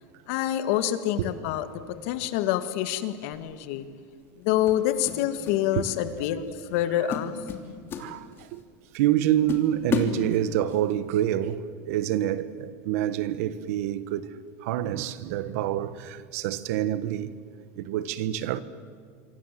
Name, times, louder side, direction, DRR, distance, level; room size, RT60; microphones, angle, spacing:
voice 1, 0.3-3.9 4.4-7.3, left 12 dB, 65° left, 2.0 m, -27 dB
sound 1, 3.3-3.6 4.7-5.6 5.9-6.2 6.6-6.8 7.1-8.6 9.0-9.1 9.5-10.8, left 6 dB, 30° left, 3.0 m, -32 dB
voice 2, 8.0-8.6 8.9-17.3 17.8-18.6, right 12 dB, 70° right, 1.4 m, -27 dB
27.0 x 25.0 x 7.7 m
supercardioid pair, 150°, 8 cm